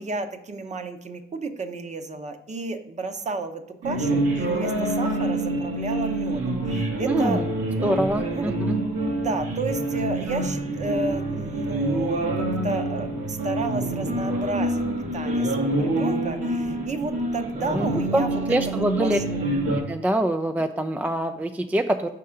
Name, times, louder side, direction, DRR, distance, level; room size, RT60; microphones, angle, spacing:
voice 1, 0.0-7.4 8.3-8.5 9.1-14.8 15.1-18.4 18.7-19.5, right 3 dB, 35° right, 8 dB, 0.8 m, -32 dB
sound 1, 3.8-19.8, right 1 dB, 90° right, 1.8 m, -26 dB
voice 2, 7.1-7.5 7.8-8.8 17.7-19.2 19.9-22.1, right 1 dB, 10° right, 7 dB, 0.3 m, -25 dB
5.4 x 3.8 x 5.7 m, 0.84 s
cardioid pair, 90°, 20 cm